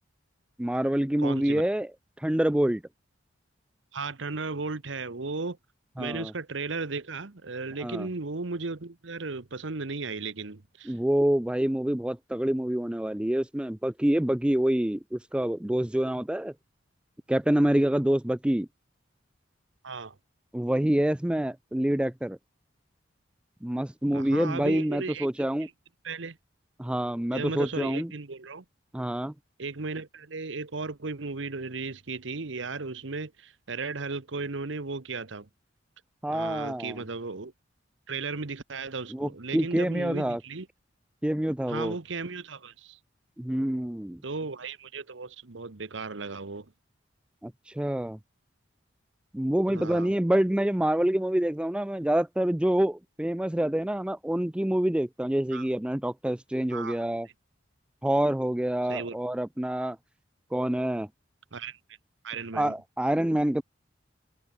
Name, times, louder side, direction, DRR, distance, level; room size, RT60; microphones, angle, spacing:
voice 1, 0.6-1.9 2.2-2.8 6.0-6.3 7.8-8.1 10.9-16.5 17.3-18.7 20.5-22.4 23.6-25.7 26.8-28.1 28.9-29.3 36.2-37.0 39.1-40.4 41.2-41.9 43.4-44.2 47.4-48.2 49.3-57.3 58.0-60.0 60.5-61.1 62.5-63.6, right 1 dB, 5° right, 0.4 m, -26 dB
voice 2, 1.2-1.7 3.9-5.6 6.0-11.0 19.8-20.2 24.1-25.7 26.0-26.4 27.3-28.6 29.6-35.5 36.3-37.5 38.1-40.7 41.7-43.0 44.2-46.7 49.7-50.1 55.5-55.7 56.7-57.0 58.9-59.2 61.5-61.8 62.2-62.8, right 4 dB, 70° right, 1.1 m, -35 dB
head